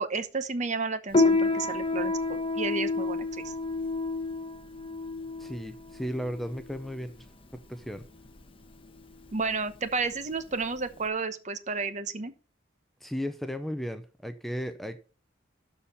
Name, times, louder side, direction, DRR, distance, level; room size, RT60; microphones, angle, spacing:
voice 1, 0.0-3.5 9.3-12.3, right 4 dB, 40° right, 1.0 m, -32 dB
Piano, 1.1-11.1, left 3 dB, 30° left, 1.1 m, -30 dB
voice 2, 5.4-7.3 7.5-8.0 13.0-15.0, equal, ahead, 0.6 m, -35 dB
12.5 x 4.3 x 6.8 m
head